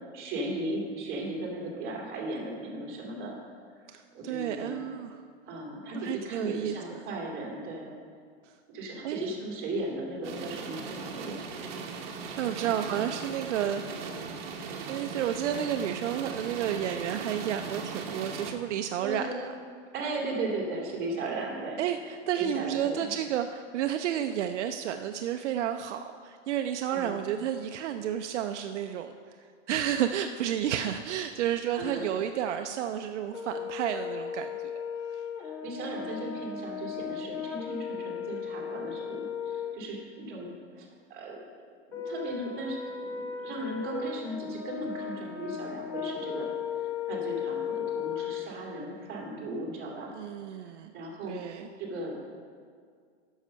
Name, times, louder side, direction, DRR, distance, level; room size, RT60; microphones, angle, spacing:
voice 1, 0.1-3.3 3.8-3.9 4.1-4.8 5.5-7.9 8.7-11.4 11.8-11.9 12.6-13.1 19.0-19.4 19.9-21.8 22.4-23.1 26.9-27.2 31.7-32.0 35.4-40.5 40.7-41.4 41.9-50.1 50.5-50.7 50.9-51.4 51.8-52.1, right 2 dB, 25° right, -2 dB, 2.4 m, -36 dB
voice 2, 3.9-5.2 5.9-6.8 8.4-8.5 9.0-9.3 12.4-14.2 14.9-19.5 21.8-29.4 29.7-34.8 35.1-35.2 50.1-50.9 51.3-51.7, right 10 dB, 70° right, 7 dB, 0.5 m, -31 dB
sound 1, 10.2-18.5, right 5 dB, 55° right, 1.1 m, -38 dB
Brass instrument, 33.3-39.8 41.9-48.5, left 7 dB, 15° left, 0.3 m, -36 dB
9.7 x 6.4 x 5.5 m, 2.1 s
supercardioid pair, 155°, 36 cm